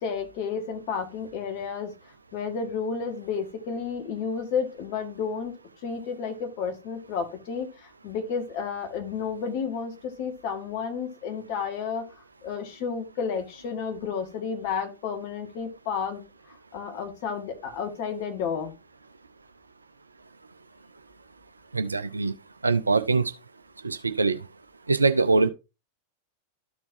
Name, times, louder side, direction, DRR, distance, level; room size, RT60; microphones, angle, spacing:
voice 1, 0.0-1.9 2.3-5.5 5.8-16.2 16.7-18.7, left 6 dB, 50° left, 1.7 m, -31 dB
voice 2, 21.7-22.3 22.6-23.3 23.8-24.4 24.9-25.5, right 3 dB, 80° right, 0.5 m, -23 dB
13.5 x 4.6 x 2.7 m
figure-of-eight pair, 90°, 0 cm